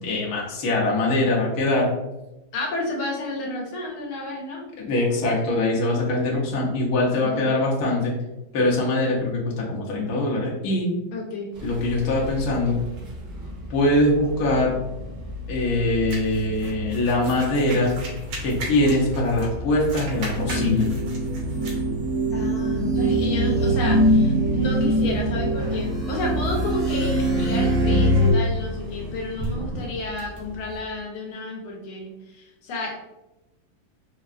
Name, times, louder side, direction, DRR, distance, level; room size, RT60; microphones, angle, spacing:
voice 1, 0.0-1.9 4.8-8.1 8.5-10.9 11.6-12.8 13.7-14.7 15.5-17.9 18.4-20.8, left 1 dB, 60° left, -3 dB, 1.1 m, -22 dB
voice 2, 2.5-4.6 7.2-7.5 11.1-11.5 22.3-33.0, left 1 dB, 85° left, 0 dB, 1.6 m, -31 dB
sound 1, 11.5-30.8, left 1 dB, 55° right, 1.1 m, -35 dB
sound 2, 16.1-19.5 19.8-21.8, right 2 dB, 80° right, 1.8 m, -38 dB
sound 3, 20.3-28.3, right 1 dB, 25° right, 1.4 m, -22 dB
4.6 x 2.3 x 2.4 m, 0.97 s
omnidirectional pair, 2.2 m